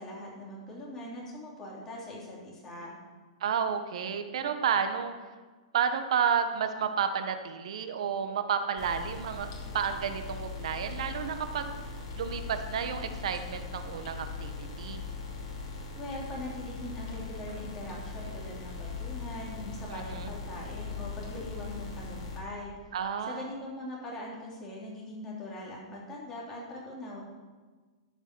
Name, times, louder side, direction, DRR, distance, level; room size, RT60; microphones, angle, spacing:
voice 1, 0.0-2.9 15.9-22.7 23.3-27.2, left 1 dB, 15° left, -5 dB, 3.1 m, -41 dB
voice 2, 3.4-5.1 5.7-11.8 12.1-15.0 19.9-20.3 22.9-23.4, right 7 dB, 70° right, 8 dB, 1.2 m, -31 dB
sound 1, 8.8-22.4, left 4 dB, 50° left, 2.3 m, -40 dB
13.0 x 5.6 x 6.1 m, 1.4 s
hypercardioid pair, 155°, 3 cm